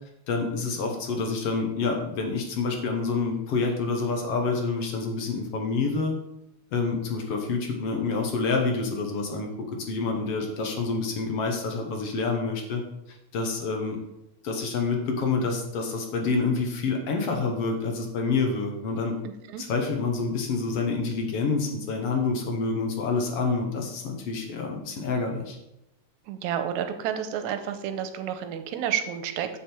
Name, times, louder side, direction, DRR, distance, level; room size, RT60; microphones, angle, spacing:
voice 1, 0.3-6.2 6.7-9.5 9.9-12.8 13.1-14.0 14.4-19.1 19.6-25.6, left 4 dB, 60° left, 2 dB, 1.9 m, -27 dB
voice 2, 26.3-29.5, right 9 dB, 90° right, 8 dB, 2.1 m, -30 dB
7.3 x 7.2 x 4.4 m, 0.86 s
omnidirectional pair, 3.3 m